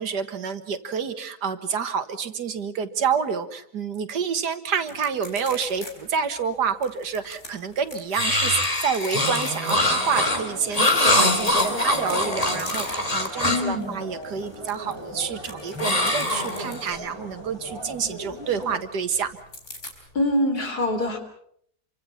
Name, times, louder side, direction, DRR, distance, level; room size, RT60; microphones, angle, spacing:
voice 1, 0.0-19.4, right 6 dB, 90° right, 10 dB, 2.1 m, -28 dB
sound 1, 4.9-5.9 6.2-6.3 6.8-8.0 8.4-9.7 11.2-13.3 13.7-13.9 14.2-17.0 19.5-19.9, left 2 dB, 45° left, 4.6 m, -40 dB
sound 2, 8.1-13.7 15.8-17.0, left 1 dB, 20° left, 3.0 m, -23 dB
sound 3, 10.0-18.8, equal, 15° right, 6.0 m, -40 dB
voice 2, 13.4-14.0 20.1-21.2, left 1 dB, 75° left, 6 dB, 3.9 m, -24 dB
28.0 x 25.0 x 5.8 m, 0.66 s
omnidirectional pair, 1.7 m